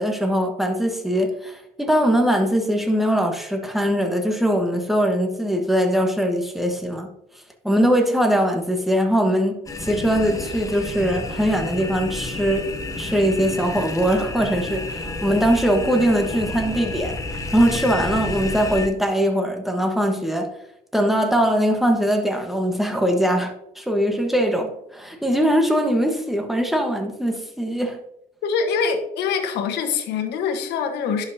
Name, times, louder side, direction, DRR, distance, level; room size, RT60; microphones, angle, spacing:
voice 1, 0.0-7.1 7.6-12.7 13.0-17.2 17.5-20.5 20.9-28.0, equal, ahead, 3 dB, 1.3 m, -21 dB
sound 1, 9.7-18.9, left 2 dB, 20° left, 0.9 m, -30 dB
voice 2, 28.4-31.2, left 6 dB, 80° left, 5 dB, 1.2 m, -24 dB
11.0 x 5.6 x 2.8 m, 0.80 s
cardioid pair, 110°, 17 cm